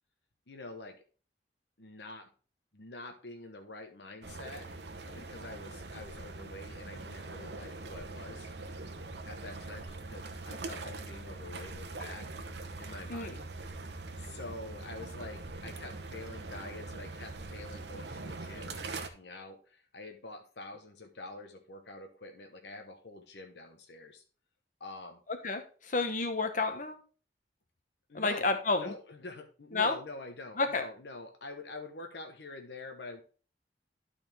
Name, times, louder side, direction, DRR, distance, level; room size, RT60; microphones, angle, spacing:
voice 1, 0.5-1.0 1.8-2.3 2.7-4.7 5.0-8.5 9.2-12.3 12.8-13.5 14.2-24.2 24.8-25.2 28.1-33.2, left 2 dB, 75° left, 4 dB, 1.0 m, -46 dB
sound 1, 4.2-19.1, right 3 dB, 75° right, 0.9 m, -43 dB
voice 2, 25.4-27.0 28.1-28.9 29.7-29.9 30.6-30.8, left 3 dB, 45° left, 7 dB, 1.1 m, -30 dB
11.5 x 4.3 x 3.4 m, 0.39 s
head